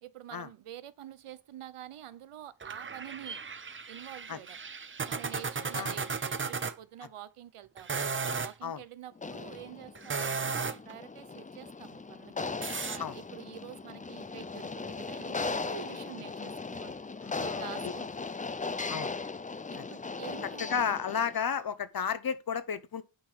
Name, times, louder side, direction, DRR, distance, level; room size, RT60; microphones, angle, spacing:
voice 1, 0.0-3.4 3.9-4.6 5.1-12.5 12.8-17.0 17.4-18.3 19.7-20.7, right 11 dB, 85° right, 0.9 m, -47 dB
sound 1, 2.6-6.7 7.8-8.5 9.9-10.9 12.6-13.0, right 5 dB, 25° right, 0.6 m, -35 dB
sound 2, 9.2-21.5, left 4 dB, 15° left, 0.4 m, -38 dB
voice 2, 17.2-17.7 18.9-19.1 19.7-19.9 20.6-23.0, left 7 dB, 45° left, 0.9 m, -33 dB
9.2 x 5.7 x 6.1 m
wide cardioid pair, 150°, 50 cm